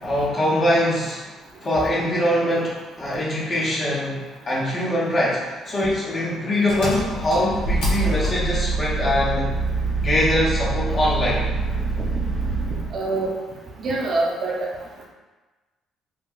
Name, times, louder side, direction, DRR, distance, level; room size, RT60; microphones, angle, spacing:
voice 1, 0.0-1.2 1.6-9.4 10.0-11.5, left 1 dB, 30° left, -6 dB, 0.8 m, -23 dB
Engine, 6.7-13.0, right 3 dB, 85° left, 1.1 m, -25 dB
voice 2, 12.9-13.3 13.8-14.6, right 2 dB, 40° right, -2 dB, 0.4 m, -24 dB
3.2 x 2.7 x 2.4 m, 1.2 s
cardioid pair, 155°, 0 cm